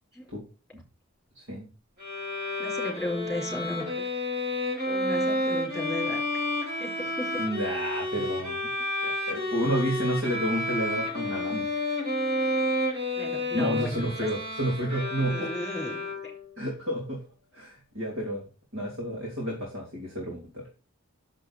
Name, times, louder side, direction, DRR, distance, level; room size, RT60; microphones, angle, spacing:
voice 1, 1.4-1.7 7.4-8.7 9.0-11.7 13.5-15.5 16.6-17.2 17.5-18.4 18.7-20.7, equal, 60° right, -3 dB, 3.6 m, -30 dB
Bowed string instrument, 2.0-16.5, left 1 dB, 45° right, 3.4 m, -30 dB
voice 2, 2.6-4.0 4.9-6.5 6.8-7.5 13.2-14.3 15.2-16.3, left 1 dB, ahead, 0 dB, 4.5 m, -35 dB
10.5 x 7.6 x 4.3 m, 0.33 s
head